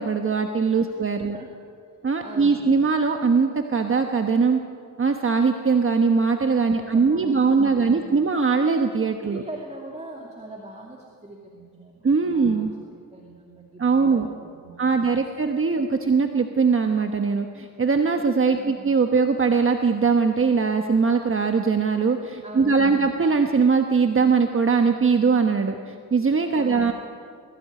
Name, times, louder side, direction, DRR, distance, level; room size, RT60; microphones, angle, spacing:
voice 1, 0.0-1.4 2.0-4.6 5.0-9.4 12.0-12.7 13.8-14.3 14.8-26.9, right 5 dB, 35° right, 5 dB, 1.2 m, -21 dB
voice 2, 0.8-1.5 2.2-2.9 6.8-8.4 9.1-12.7 13.1-15.6 18.5-18.9 22.4-23.2 26.6-26.9, right 2 dB, 20° right, -1 dB, 2.6 m, -42 dB
21.0 x 15.5 x 9.5 m, 2.3 s
cardioid pair, 100°, 35 cm